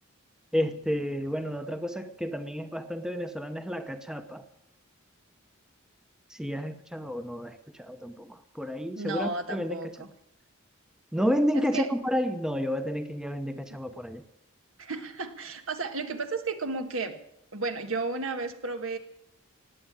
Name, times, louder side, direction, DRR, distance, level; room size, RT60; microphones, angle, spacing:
voice 1, 0.5-4.4 6.3-10.0 11.1-14.2, equal, 5° right, 9 dB, 0.8 m, -31 dB
voice 2, 9.0-10.1 11.5-11.9 14.8-17.2 17.5-19.0, right 3 dB, 75° right, 7 dB, 1.7 m, -33 dB
18.5 x 8.6 x 8.9 m, 0.79 s
head